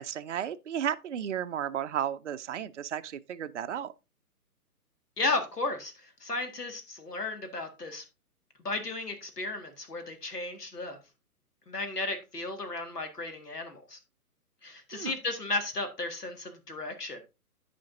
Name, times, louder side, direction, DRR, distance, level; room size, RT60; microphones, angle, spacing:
voice 1, 0.0-3.9 14.9-15.1, right 9 dB, 50° right, 0.5 m, -33 dB
voice 2, 5.2-8.0 8.6-11.0 11.7-14.0 14.6-17.2, left 2 dB, 80° left, 1.9 m, -34 dB
14.0 x 5.1 x 2.6 m
figure-of-eight pair, 130°, 47 cm